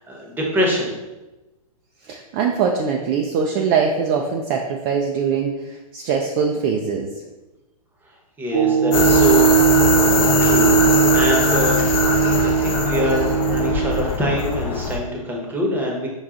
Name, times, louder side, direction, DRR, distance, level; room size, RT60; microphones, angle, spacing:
voice 1, 0.1-0.9 8.4-9.5 10.0-10.8 11.1-11.8 12.4-16.1, equal, 10° right, -1 dB, 0.9 m, -24 dB
voice 2, 2.0-7.1, right 6 dB, 35° right, 2 dB, 0.4 m, -22 dB
sound 1, 8.5-14.0, right 8 dB, 65° right, 0.9 m, -18 dB
sound 2, 8.9-15.0, left 5 dB, 30° left, 0.6 m, -21 dB
5.6 x 2.3 x 3.6 m, 1.1 s
hypercardioid pair, 120°, 19 cm